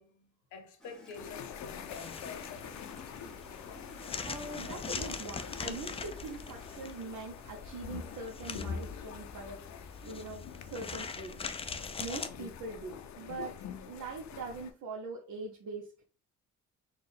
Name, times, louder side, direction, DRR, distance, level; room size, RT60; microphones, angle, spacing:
voice 1, 0.0-2.9, left 5 dB, 90° left, 1.0 m, -48 dB
Gurgling / Toilet flush, 0.8-7.9, left 1 dB, ahead, 0.9 m, -55 dB
sound 1, 1.1-14.7, left 7 dB, 65° left, 0.6 m, -45 dB
sound 2, 1.9-12.3, left 5 dB, 20° left, 0.3 m, -43 dB
voice 2, 4.0-9.6 10.0-11.6 12.0-13.5 13.9-16.1, right 3 dB, 70° right, 0.8 m, -42 dB
4.3 x 2.3 x 3.5 m
cardioid pair, 90°, 30 cm